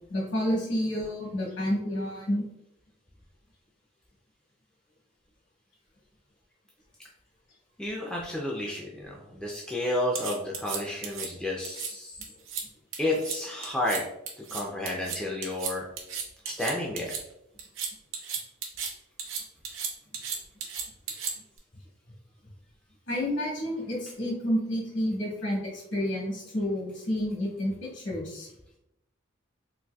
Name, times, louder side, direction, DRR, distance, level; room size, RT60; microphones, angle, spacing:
voice 1, 0.1-2.5 23.1-28.5, equal, 65° left, -3 dB, 1.2 m, -30 dB
voice 2, 7.8-12.2 13.0-14.1 14.4-15.9 16.4-17.2, left 1 dB, 5° left, -3 dB, 0.3 m, -31 dB
sound 1, 10.2-11.3 11.6-11.9 12.2-12.6 12.9-13.4 13.6-14.0 14.3-17.2 17.6-18.9 19.2-21.6, right 6 dB, 75° right, 0.7 m, -34 dB
4.0 x 2.6 x 2.2 m, 0.83 s
head